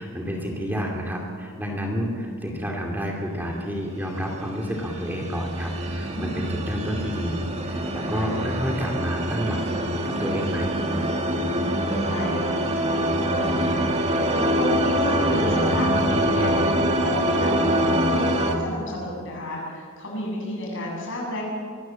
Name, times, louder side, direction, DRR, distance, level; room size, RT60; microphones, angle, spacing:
voice 1, 0.0-9.6 10.0-10.8, equal, 10° right, 0 dB, 2.5 m, -30 dB
sound 1, 4.2-18.5, right 1 dB, 30° right, 1.8 m, -25 dB
voice 2, 6.1-6.4 8.1-8.3 11.5-16.7 17.0-21.4, left 1 dB, 60° left, -2 dB, 7.9 m, -31 dB
24.0 x 15.0 x 7.5 m, 2.2 s
head